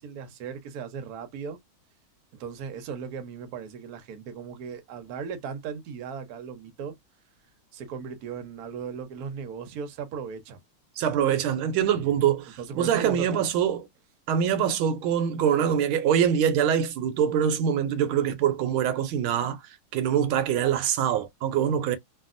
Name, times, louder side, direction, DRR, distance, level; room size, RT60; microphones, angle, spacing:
voice 1, 0.0-1.6 2.3-6.9 7.7-10.6 11.9-12.2 12.6-13.6, right 6 dB, 60° right, 1.0 m, -37 dB
voice 2, 11.0-13.8 14.3-19.6 19.9-22.0, right 9 dB, 80° right, 1.4 m, -24 dB
3.4 x 2.3 x 2.4 m
omnidirectional pair, 2.3 m